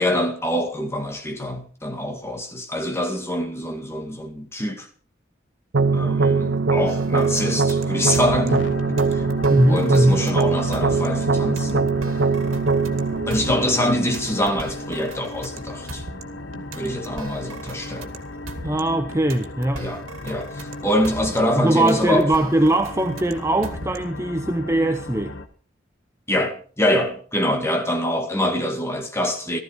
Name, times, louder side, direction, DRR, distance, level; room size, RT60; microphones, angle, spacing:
voice 1, 0.0-4.9 5.9-9.3 9.7-11.9 13.3-16.0 16.7-18.1 19.8-22.3 26.3-29.6, left 1 dB, 15° left, 2.1 m, -25 dB
sound 1, 5.7-14.7, right 4 dB, 55° right, 0.6 m, -22 dB
sound 2, 6.9-24.3, right 2 dB, 80° right, 2.3 m, -39 dB
sound 3, 8.5-25.5, left 2 dB, 65° left, 1.2 m, -37 dB
voice 2, 9.5-10.2 18.6-19.9 21.6-25.3, right 1 dB, 15° right, 0.7 m, -20 dB
15.0 x 14.0 x 4.6 m
head